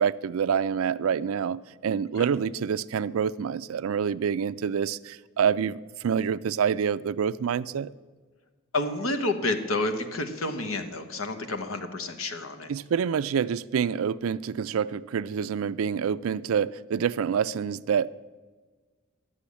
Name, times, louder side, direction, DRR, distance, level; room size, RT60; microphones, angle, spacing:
voice 1, 0.0-7.9 12.7-18.1, right 7 dB, 75° right, 0.4 m, -27 dB
voice 2, 8.7-12.7, left 2 dB, 70° left, 1.2 m, -29 dB
11.5 x 6.9 x 8.4 m
head